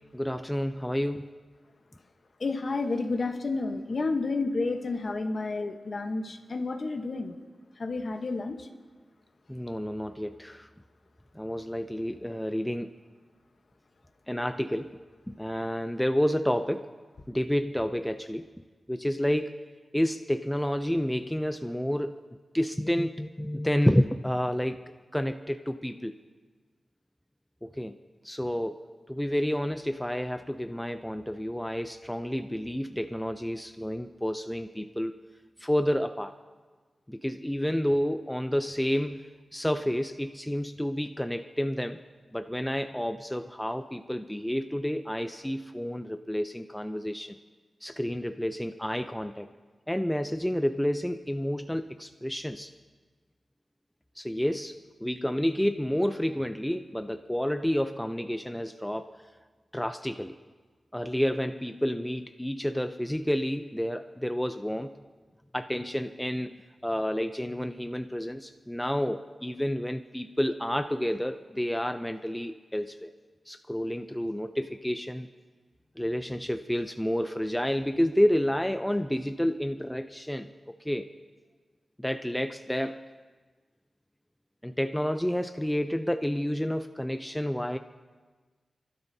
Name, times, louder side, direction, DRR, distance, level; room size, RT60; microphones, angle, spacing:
voice 1, 0.1-1.3 9.5-10.7 11.4-12.9 14.3-15.0 15.3-16.9 17.3-18.5 18.9-19.6 19.9-22.2 22.5-26.1 27.6-28.0 28.2-35.1 35.6-36.3 37.1-39.2 39.5-42.0 42.3-47.4 47.8-49.5 49.9-52.7 54.2-59.1 59.7-60.3 60.9-64.9 65.5-66.5 66.8-73.1 73.5-75.3 76.0-81.1 82.0-83.1 84.6-87.8, equal, 5° left, 7 dB, 0.4 m, -30 dB
voice 2, 2.4-7.3 7.8-8.6, left 3 dB, 50° left, 6 dB, 1.0 m, -30 dB
29.0 x 12.0 x 2.7 m, 1.4 s
wide cardioid pair, 140°, 0 cm